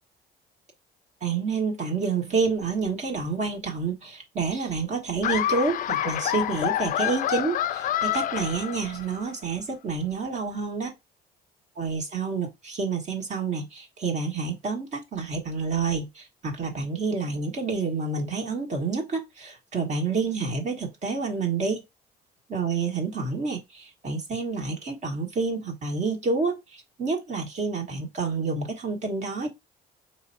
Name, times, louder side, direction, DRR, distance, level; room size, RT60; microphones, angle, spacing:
voice 1, 1.2-10.9 11.8-21.8 22.5-29.5, right 4 dB, 45° right, 1.6 m, -28 dB
Laughter, 5.2-9.2, left 12 dB, 50° left, 0.4 m, -27 dB
4.7 x 3.3 x 2.7 m
cardioid pair, 110°, 17 cm